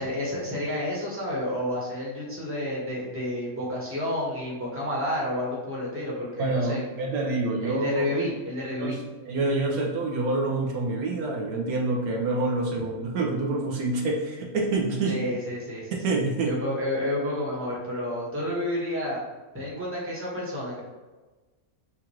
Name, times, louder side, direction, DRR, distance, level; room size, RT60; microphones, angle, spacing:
voice 1, 0.0-6.9 7.6-9.0 15.0-15.9 16.4-19.2 19.5-20.8, left 1 dB, 10° right, -5 dB, 1.1 m, -30 dB
voice 2, 6.4-8.1 8.8-8.9 9.3-15.2 16.0-16.6, right 2 dB, 85° right, -1 dB, 1.3 m, -27 dB
5.7 x 2.5 x 3.0 m, 1.2 s
omnidirectional pair, 1.5 m